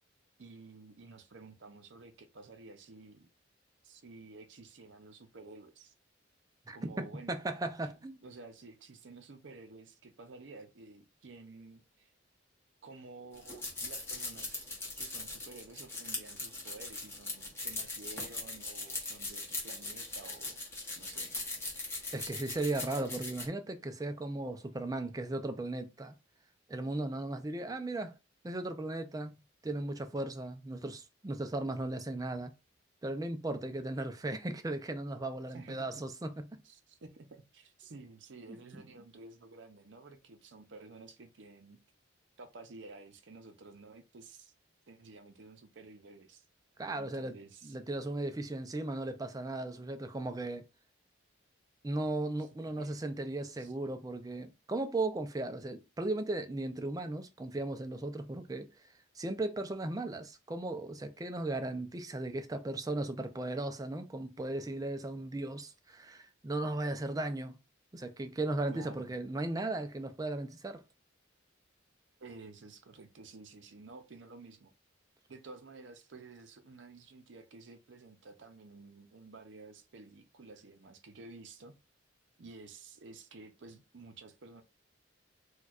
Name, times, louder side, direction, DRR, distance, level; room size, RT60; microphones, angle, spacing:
voice 1, 0.4-3.3 3.8-5.9 6.7-7.4 7.8-7.9 8.2-12.1 12.8-14.7 15.0-20.6 21.0-21.3 35.5-36.0 36.6-41.8 42.4-44.5 44.9-46.4 46.9-47.8 52.4-53.0 53.6-53.7 68.7-69.1 72.2-74.7 75.3-81.8 82.4-84.6, right 3 dB, 65° right, 0.6 m, -52 dB
voice 2, 6.7-8.2 22.1-26.1 26.7-28.1 28.4-32.5 33.0-36.6 38.7-38.8 46.8-47.4 47.6-50.6 51.8-58.7 59.2-67.6 67.9-70.8, right 2 dB, 20° right, 0.4 m, -36 dB
sound 1, 13.3-23.4, left 2 dB, 15° left, 0.9 m, -40 dB
4.4 x 2.3 x 2.4 m
head